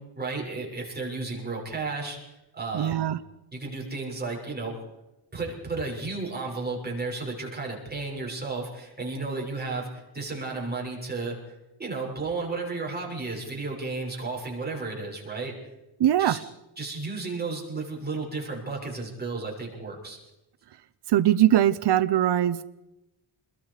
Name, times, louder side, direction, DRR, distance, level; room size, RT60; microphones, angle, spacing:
voice 1, 0.1-3.0 3.5-4.8 5.3-15.5 16.2-16.4 16.8-20.2, right 3 dB, 20° right, -2 dB, 6.6 m, -33 dB
voice 2, 2.7-3.2 16.0-16.4 21.1-22.6, right 12 dB, 60° right, 11 dB, 0.8 m, -21 dB
28.5 x 22.0 x 5.0 m, 0.96 s
wide cardioid pair, 150°, 46 cm